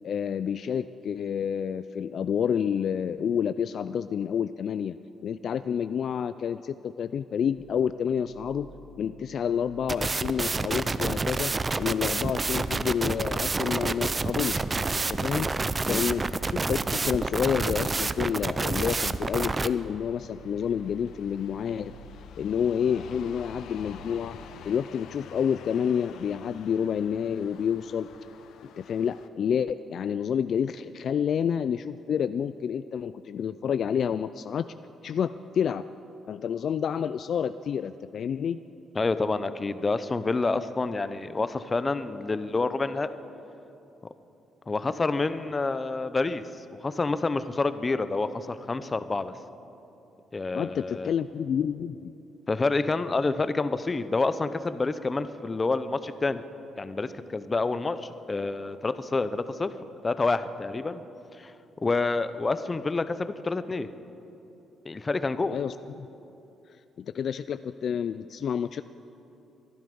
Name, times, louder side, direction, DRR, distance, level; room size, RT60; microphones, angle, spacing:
voice 1, 0.0-5.0 5.2-8.7 9.0-11.5 11.8-14.6 15.1-15.5 15.9-21.9 22.4-24.4 24.6-28.1 28.6-34.7 35.0-35.8 36.3-38.6 50.5-52.1 65.5-66.1 67.0-68.8, left 8 dB, 60° left, 13 dB, 0.3 m, -29 dB
sound 1, 7.5-24.3, right 1 dB, 50° right, 4.5 m, -50 dB
sound 2, 9.9-19.7, right 3 dB, 25° right, 0.5 m, -28 dB
sound 3, 17.1-29.3, left 7 dB, 80° left, 0.7 m, -49 dB
voice 2, 39.0-43.1 44.7-49.3 50.3-51.1 52.5-56.4 56.8-59.7 60.0-61.0 61.4-61.5 61.8-63.9 64.8-65.6, left 3 dB, 25° left, 12 dB, 0.7 m, -28 dB
23.0 x 11.5 x 5.4 m, 2.9 s
cardioid pair, 90°, 0 cm